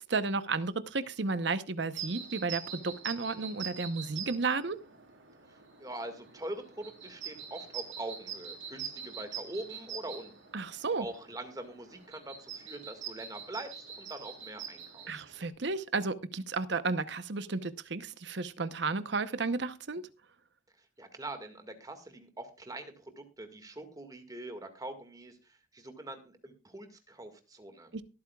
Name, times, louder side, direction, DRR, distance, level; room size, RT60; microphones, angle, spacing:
voice 1, 0.1-4.8 10.5-11.1 15.1-20.0 27.9-28.0, right 4 dB, 60° right, 13 dB, 0.9 m, -33 dB
sound 1, 1.9-15.5, right 7 dB, 90° right, 4.0 m, -44 dB
voice 2, 5.5-10.3 11.0-15.2 21.0-27.9, right 1 dB, 20° right, 7 dB, 1.9 m, -43 dB
23.0 x 8.6 x 2.3 m, 0.30 s
head